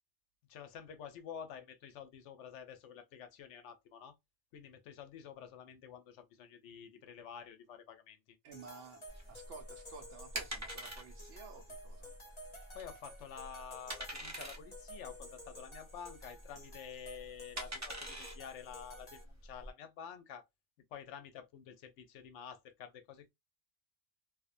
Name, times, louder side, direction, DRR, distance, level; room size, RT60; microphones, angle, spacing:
voice 1, 0.5-4.2 4.5-8.2 12.7-20.4 20.9-23.3, left 8 dB, 70° left, 0.8 m, -49 dB
voice 2, 8.4-9.0 9.3-12.1, right 4 dB, 75° right, 0.9 m, -53 dB
sound 1, 8.5-19.2, equal, 30° left, 0.7 m, -53 dB
sound 2, 9.1-19.7, right 1 dB, 25° right, 0.4 m, -46 dB
2.5 x 2.1 x 2.4 m
omnidirectional pair, 1.3 m